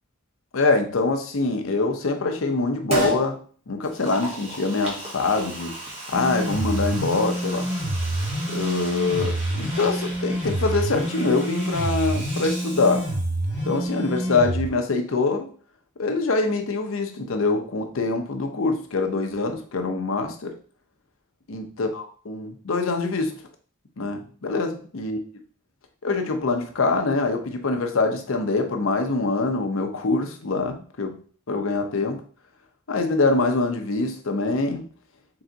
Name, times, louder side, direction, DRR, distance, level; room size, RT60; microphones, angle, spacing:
voice 1, 0.5-3.4 3.7-5.7 6.1-7.7 8.5-13.1 13.7-15.5 16.0-20.6 21.5-23.4 24.0-25.2 26.0-31.2 31.5-32.2 32.9-34.8, left 3 dB, 85° left, 5 dB, 0.7 m, -24 dB
Liquid, 2.9-3.2 3.8-13.5 13.8-13.9, right 1 dB, 30° right, 1.5 m, -34 dB
sound 1, 6.1-14.7, right 1 dB, 10° right, 2.2 m, -27 dB
3.9 x 3.5 x 3.9 m, 0.43 s
head